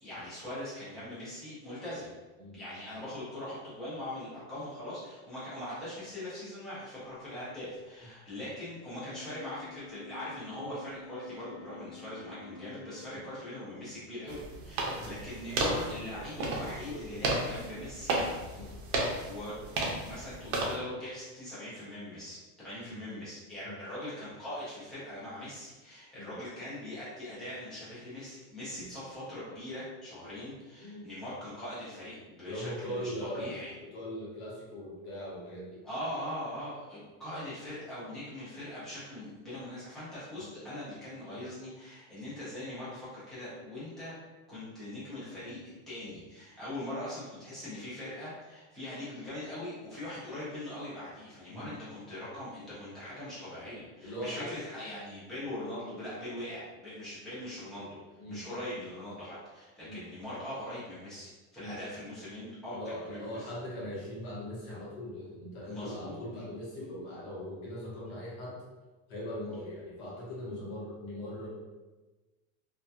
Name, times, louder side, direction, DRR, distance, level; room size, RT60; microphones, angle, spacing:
voice 1, 0.0-2.1 2.5-18.7 19.3-19.6 20.0-33.7 35.8-44.1 44.5-58.0 58.3-63.5 65.6-66.2, left 1 dB, ahead, -11 dB, 0.4 m, -41 dB
Wind instrument woodwind instrument, 8.9-13.7, left 4 dB, 15° right, 1.1 m, -50 dB
sound 1, 14.3-20.8, right 2 dB, 65° right, 0.6 m, -34 dB
voice 2, 15.5-16.2 16.9-17.3 18.5-18.7 22.8-23.0 23.6-23.8 26.1-26.4 28.7-28.9 30.8-31.1 32.5-35.8 40.3-40.6 51.5-51.7 54.0-54.5 58.2-58.4 59.8-60.0 61.6-61.8 62.7-68.6 69.1-71.5, equal, 40° left, -5 dB, 0.8 m, -40 dB
2.6 x 2.2 x 2.2 m, 1.2 s
supercardioid pair, 165°, 40 cm